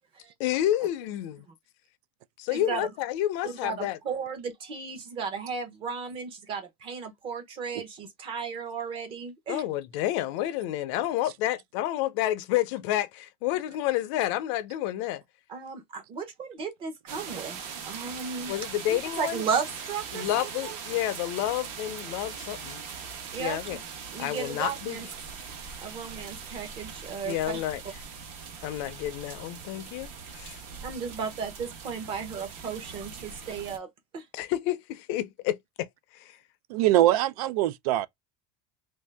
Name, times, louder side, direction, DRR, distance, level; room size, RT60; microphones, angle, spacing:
voice 1, 0.4-1.4 2.4-4.0 9.5-15.2 18.5-19.4 20.1-22.8 23.4-23.8 24.2-25.0 27.2-27.8 28.6-30.6 34.3-35.9 36.1-36.4, left 13 dB, 50° left, 0.5 m, -30 dB
voice 2, 2.5-2.9 3.4-9.6 15.5-20.8 23.3-23.8 24.1-25.1 25.8-27.6 30.8-33.9 34.1-34.3, right 6 dB, 25° right, 0.9 m, -35 dB
sound 1, 17.1-33.8, right 6 dB, 50° right, 1.0 m, -41 dB
voice 3, 36.7-38.1, right 14 dB, 75° right, 0.4 m, -23 dB
3.3 x 2.7 x 3.3 m
cardioid pair, 180°, 20 cm